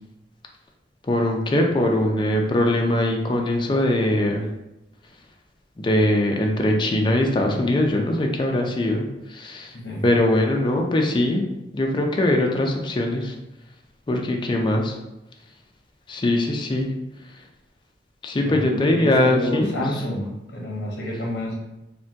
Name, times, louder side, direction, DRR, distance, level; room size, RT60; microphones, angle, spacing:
voice 1, 1.1-4.4 5.8-9.1 9.3-9.7 10.0-11.4 11.7-13.3 14.1-14.9 16.1-16.9 18.2-19.7, left 1 dB, 25° left, 2 dB, 0.4 m, -21 dB
voice 2, 9.7-10.1 18.4-21.5, left 1 dB, 70° left, -1 dB, 0.7 m, -29 dB
3.4 x 2.2 x 2.7 m, 0.94 s
head